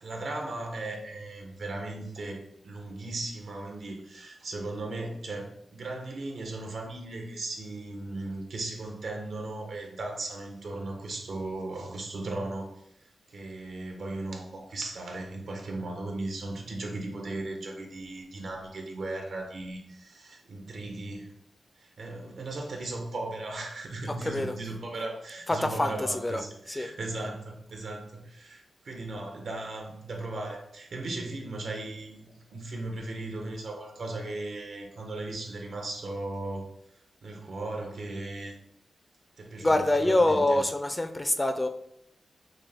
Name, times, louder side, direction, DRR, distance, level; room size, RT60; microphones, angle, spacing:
voice 1, 0.0-2.4 2.6-12.8 13.3-21.3 21.8-36.7 37.2-38.5 39.4-40.6, right 2 dB, 75° right, 2 dB, 1.1 m, -37 dB
voice 2, 24.1-24.6 25.5-26.4 26.7-26.9 39.6-41.7, left 1 dB, 20° left, 8 dB, 0.4 m, -25 dB
6.1 x 2.2 x 3.4 m, 0.76 s
cardioid pair, 75°, 0 cm